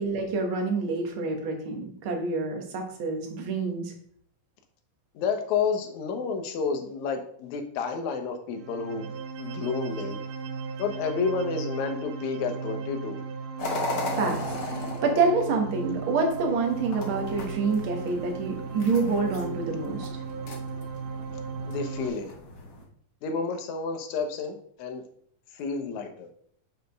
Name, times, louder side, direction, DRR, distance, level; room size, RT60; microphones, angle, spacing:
voice 1, 0.0-3.9 14.1-20.1, right 4 dB, 50° right, 2 dB, 1.9 m, -27 dB
voice 2, 5.2-9.1 9.4-10.2 10.8-13.2 21.7-22.3 23.2-25.0 25.5-26.3, left 5 dB, 70° left, 5 dB, 2.3 m, -30 dB
sound 1, 8.5-22.1, right 5 dB, 90° right, 2.4 m, -36 dB
sound 2, 13.6-22.8, left 2 dB, 50° left, 1.4 m, -37 dB
6.6 x 5.1 x 5.2 m, 0.62 s
omnidirectional pair, 3.6 m